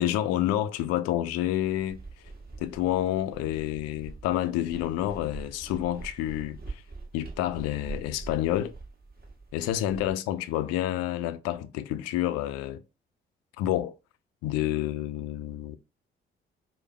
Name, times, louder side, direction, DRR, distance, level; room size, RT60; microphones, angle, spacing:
voice 1, 0.0-2.0 2.6-6.8 7.1-8.7 9.5-12.8 13.6-13.9 14.4-15.8, left 12 dB, 55° left, 0.5 m, -29 dB
sound 1, 1.6-10.1, right 3 dB, 30° right, 1.4 m, -44 dB
4.9 x 2.1 x 3.2 m
figure-of-eight pair, 40°, 29 cm